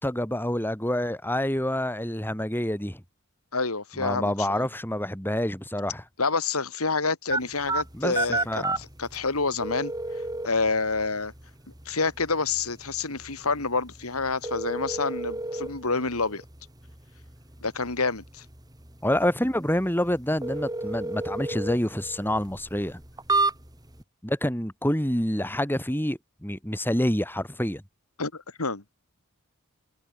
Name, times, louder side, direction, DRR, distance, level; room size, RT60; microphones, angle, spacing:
voice 1, 0.0-3.0 4.0-6.0 7.9-8.1 8.5-8.8 19.0-23.0 24.2-27.8, left 1 dB, 10° left, 4.7 m, -27 dB
voice 2, 3.5-4.7 6.2-9.9 10.4-11.3 11.8-16.4 17.6-18.4 28.2-28.8, left 4 dB, 85° left, 3.1 m, -28 dB
sound 1, 7.3-24.0, right 2 dB, 20° right, 4.9 m, -33 dB
head